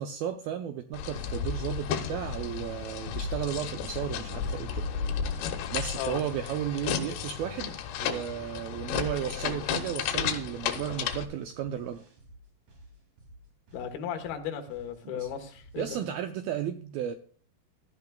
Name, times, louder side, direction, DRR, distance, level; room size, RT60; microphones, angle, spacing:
voice 1, 0.0-4.9 5.7-12.0 15.0-15.3 15.8-17.1, right 10 dB, 80° right, 6 dB, 2.1 m, -34 dB
sound 1, 0.9-11.2, left 7 dB, 90° left, 3.2 m, -33 dB
sound 2, 8.5-16.2, equal, 45° right, 4.0 m, -53 dB
voice 2, 13.7-15.9, left 9 dB, 70° left, 4 dB, 3.2 m, -35 dB
16.0 x 12.0 x 2.3 m, 0.42 s
omnidirectional pair, 4.9 m